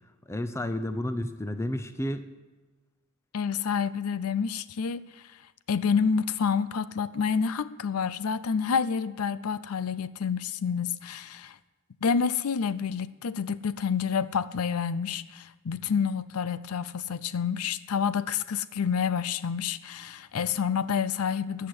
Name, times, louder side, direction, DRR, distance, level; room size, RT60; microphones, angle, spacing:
voice 1, 0.3-2.3, left 1 dB, 10° left, 9 dB, 0.6 m, -31 dB
voice 2, 3.3-5.2 5.7-11.6 12.0-21.7, left 6 dB, 80° left, 15 dB, 0.5 m, -28 dB
14.5 x 6.6 x 9.7 m, 1.2 s
head